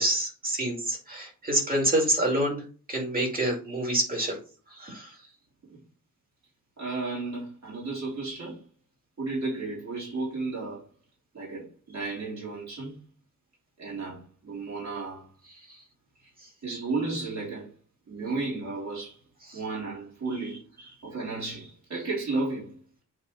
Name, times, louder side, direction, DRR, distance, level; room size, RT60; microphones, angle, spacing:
voice 1, 0.0-2.6 2.9-4.4 4.7-5.1 19.5-19.6, right 1 dB, 25° right, 2.4 m, -27 dB
voice 2, 6.8-8.6 9.2-10.9 11.3-13.0 13.8-15.3 16.6-17.7 18.1-19.2 19.5-20.6 21.0-22.8, right 3 dB, 50° right, 3.5 m, -33 dB
8.6 x 3.4 x 4.0 m
wide cardioid pair, 165°, 34 cm